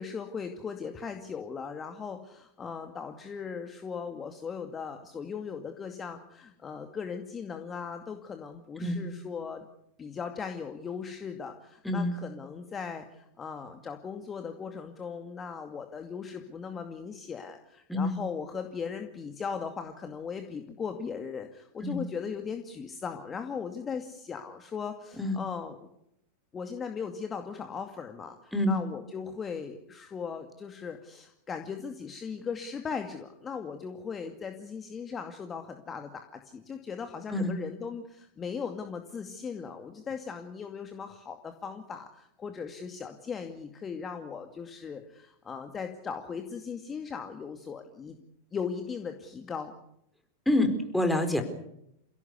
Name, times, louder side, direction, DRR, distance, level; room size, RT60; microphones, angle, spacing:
voice 1, 0.0-9.7 10.0-25.9 26.5-48.2 48.5-49.7, left 6 dB, 20° left, 6 dB, 2.3 m, -38 dB
voice 2, 50.5-51.4, left 1 dB, 5° left, 6 dB, 4.4 m, -26 dB
28.5 x 17.0 x 8.3 m, 0.78 s
figure-of-eight pair, 90°, 0 cm